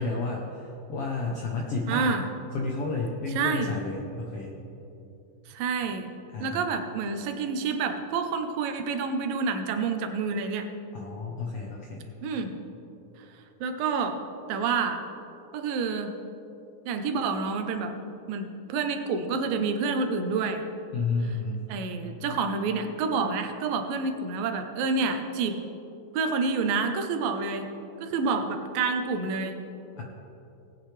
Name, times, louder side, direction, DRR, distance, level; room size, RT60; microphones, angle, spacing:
voice 1, 0.0-2.2 2.5-4.5 6.3-6.6 10.9-12.1 20.9-21.7 30.0-30.1, left 3 dB, 75° left, -1 dB, 1.3 m, -31 dB
voice 2, 1.9-2.2 3.4-3.7 5.5-6.1 6.4-10.7 12.2-12.5 13.6-14.2 14.5-15.0 15.5-16.1 16.9-17.9 18.3-20.7 21.7-25.6 26.1-27.7 28.0-29.6, right 4 dB, 90° right, 6 dB, 2.6 m, -28 dB
19.0 x 8.8 x 3.3 m, 2.9 s
omnidirectional pair, 3.9 m